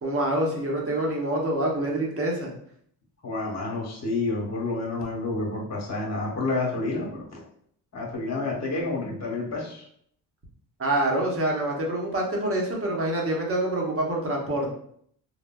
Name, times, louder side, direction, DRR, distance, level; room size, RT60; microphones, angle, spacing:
voice 1, 0.0-2.5 10.8-14.7, right 1 dB, 30° right, -2 dB, 0.9 m, -26 dB
voice 2, 3.2-7.4 7.9-9.9, left 3 dB, 35° left, -2 dB, 1.1 m, -29 dB
3.2 x 2.1 x 2.2 m, 0.66 s
supercardioid pair, 75°, 45 cm